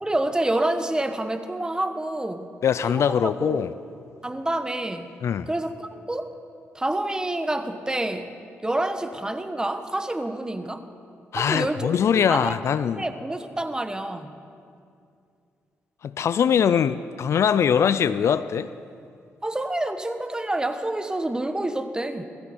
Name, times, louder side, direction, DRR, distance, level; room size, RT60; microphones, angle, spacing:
voice 1, 0.0-2.5 2.9-3.7 4.2-5.2 5.5-6.3 6.7-8.3 8.6-10.9 11.4-12.5 12.9-14.3 19.4-22.2, right 1 dB, 15° right, 1.2 m, -28 dB
voice 2, 2.6-3.7 5.2-5.5 11.3-13.1 16.0-18.7, left 8 dB, 65° left, 0.4 m, -22 dB
20.0 x 15.0 x 4.3 m
supercardioid pair, 60°, 5 cm